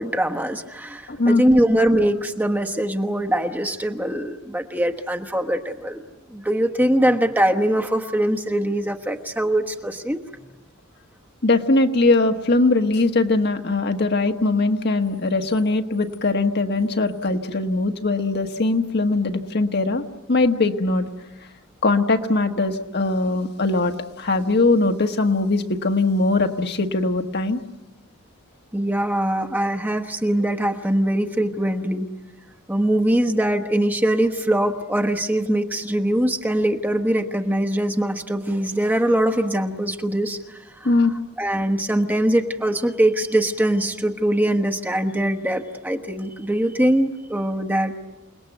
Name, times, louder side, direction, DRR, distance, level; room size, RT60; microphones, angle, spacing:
voice 1, 0.0-6.0 6.3-10.2 28.7-32.1 32.7-40.9 41.4-47.9, right 1 dB, 10° right, 4 dB, 1.2 m, -22 dB
voice 2, 1.1-1.4 11.4-21.1 21.8-27.6 40.8-41.1, left 2 dB, 50° left, 5 dB, 1.4 m, -21 dB
29.0 x 19.5 x 9.2 m, 1.0 s
head